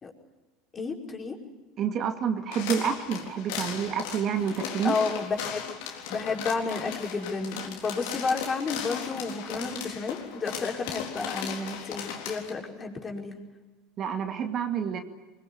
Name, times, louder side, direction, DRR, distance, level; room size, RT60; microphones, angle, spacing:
voice 1, 0.7-1.4 4.8-5.7 6.1-13.4, left 4 dB, 30° left, 1 dB, 5.1 m, -31 dB
voice 2, 1.8-5.0 14.0-15.0, right 7 dB, 45° right, 6 dB, 2.2 m, -28 dB
sound 1, 2.5-12.5, left 8 dB, 65° left, 3.8 m, -37 dB
23.5 x 22.5 x 9.9 m, 1.2 s
hypercardioid pair, 75°, 0 cm